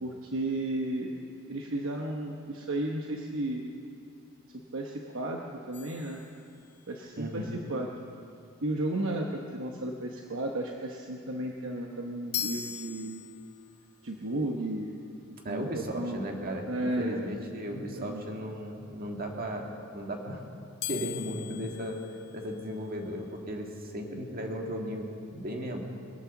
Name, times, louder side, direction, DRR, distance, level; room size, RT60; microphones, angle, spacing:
voice 1, 0.0-1.1 1.5-3.6 4.7-6.2 6.9-7.9 8.6-13.2 14.0-15.0 15.5-16.2 16.7-17.3 17.7-18.2, right 1 dB, 60° right, 1 dB, 1.0 m, -33 dB
sound 1, 5.7-7.0 12.3-13.8 20.8-22.9, left 10 dB, 50° left, 0.7 m, -40 dB
voice 2, 7.2-7.5 15.4-20.4 20.9-22.0 22.3-25.8, equal, 45° right, 1 dB, 1.9 m, -36 dB
22.0 x 8.7 x 7.1 m, 2.5 s
head